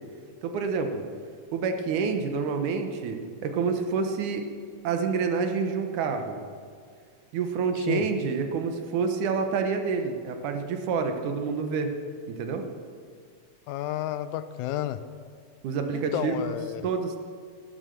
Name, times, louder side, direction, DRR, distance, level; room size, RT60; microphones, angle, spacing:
voice 1, 0.4-1.0 1.5-4.5 4.8-6.4 7.3-11.9 12.3-12.7 15.6-16.6 16.8-17.2, right 5 dB, 85° right, 5 dB, 2.6 m, -28 dB
voice 2, 13.7-15.0 15.9-16.9, left 12 dB, 80° left, 12 dB, 2.0 m, -31 dB
13.0 x 11.5 x 6.7 m, 2.1 s
omnidirectional pair, 3.4 m